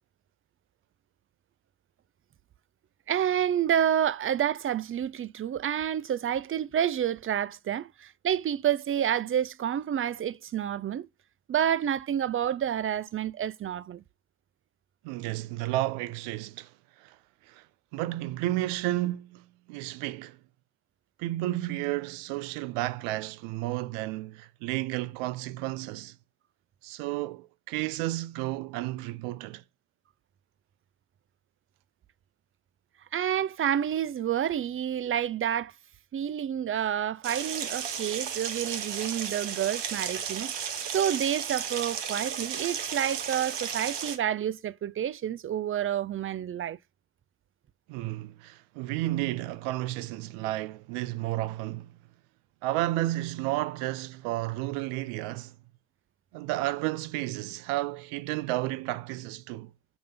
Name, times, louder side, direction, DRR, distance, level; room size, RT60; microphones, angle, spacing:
voice 1, 3.1-11.1 11.5-14.0 33.1-35.7 36.1-40.5 40.9-46.8, right 10 dB, 30° right, 0.3 m, -29 dB
voice 2, 15.0-17.2 17.5-17.7 17.9-20.4 21.2-26.2 26.8-29.6 47.9-51.9 52.6-55.5 56.3-59.7, right 16 dB, 90° right, 0.6 m, -32 dB
sound 1, 37.2-44.2, right 8 dB, 55° right, 1.2 m, -34 dB
6.2 x 3.2 x 5.1 m
supercardioid pair, 70°, 49 cm